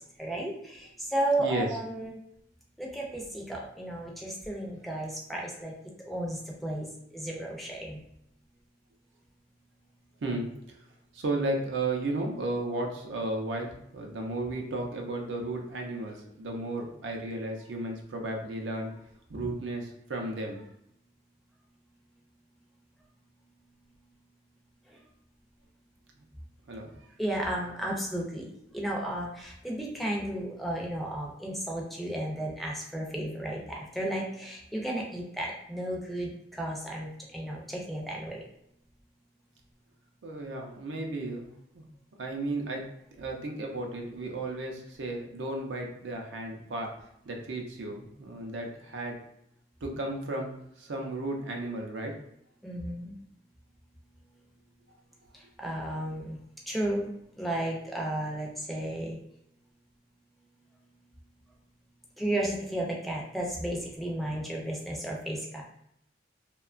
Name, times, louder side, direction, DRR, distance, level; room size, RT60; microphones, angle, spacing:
voice 1, 0.2-2.2 2.8-5.7 6.0-6.9 7.1-8.0 27.2-28.5 28.7-38.4 52.6-53.1 55.6-56.4 56.7-57.1 57.4-59.2 62.2-65.4, right 1 dB, ahead, -2 dB, 0.4 m, -33 dB
voice 2, 1.4-1.8 10.2-10.5 11.1-18.9 19.3-20.6 26.7-26.9 40.2-41.5 41.7-41.8 42.2-42.8 43.2-46.9 47.3-49.2 49.8-52.1, right 2 dB, 75° right, 1 dB, 0.5 m, -34 dB
2.8 x 2.2 x 2.4 m, 0.76 s
head